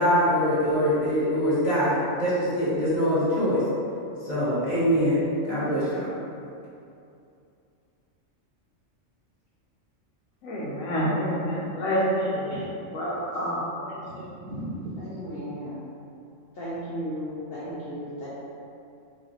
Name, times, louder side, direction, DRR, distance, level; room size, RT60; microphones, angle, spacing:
voice 1, 0.0-3.6 4.2-6.1, equal, 35° left, -12 dB, 1.3 m, -23 dB
voice 2, 10.4-12.5 12.9-13.6, equal, 90° left, -6 dB, 1.1 m, -27 dB
voice 3, 11.8-12.7 13.2-13.4 13.8-15.0, right 1 dB, 70° right, -4 dB, 1.0 m, -39 dB
voice 4, 15.0-15.8 16.6-18.3, equal, 60° left, -9 dB, 0.7 m, -35 dB
4.0 x 2.4 x 2.7 m, 2.6 s
omnidirectional pair, 1.4 m